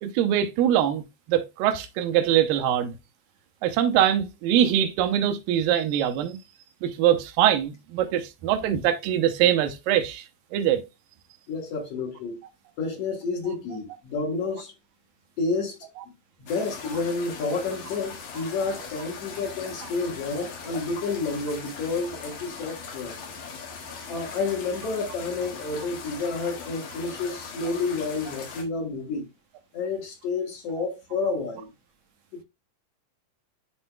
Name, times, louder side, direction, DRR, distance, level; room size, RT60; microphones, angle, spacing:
voice 1, 0.0-1.0 1.3-3.0 3.6-6.4 6.8-10.2 10.5-10.8, right 10 dB, 80° right, 2.5 m, -23 dB
voice 2, 11.5-12.4 12.8-14.7 15.4-15.8 16.5-23.2 24.1-29.3 29.7-31.7 32.3-32.4, left 4 dB, 60° left, 1.9 m, -30 dB
sound 1, 16.5-28.6, left 5 dB, 90° left, 3.5 m, -40 dB
11.5 x 4.3 x 2.2 m
omnidirectional pair, 4.0 m